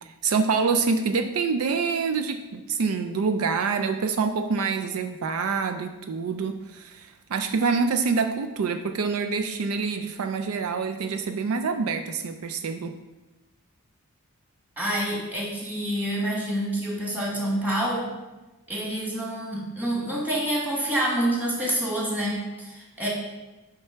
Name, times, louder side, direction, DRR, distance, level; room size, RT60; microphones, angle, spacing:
voice 1, 0.0-12.9, right 5 dB, 75° right, 7 dB, 0.4 m, -26 dB
voice 2, 14.8-18.1 18.7-23.1, right 1 dB, 10° right, -4 dB, 1.8 m, -27 dB
7.7 x 3.4 x 5.7 m, 1.1 s
head